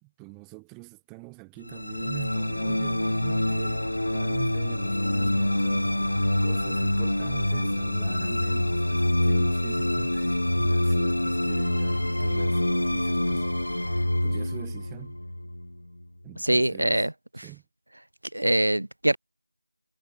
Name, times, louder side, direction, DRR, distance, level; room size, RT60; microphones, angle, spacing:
voice 1, 0.0-13.5 13.9-15.2 16.2-17.1 17.4-17.6, right 34 dB, 5° right, 2.1 m, -44 dB
sound 1, 1.6-16.0, left 1 dB, 90° left, 1.5 m, -26 dB
voice 2, 16.4-17.5 18.3-19.2, right 1 dB, 70° right, 3.3 m, -24 dB
figure-of-eight pair, 180°, 0 cm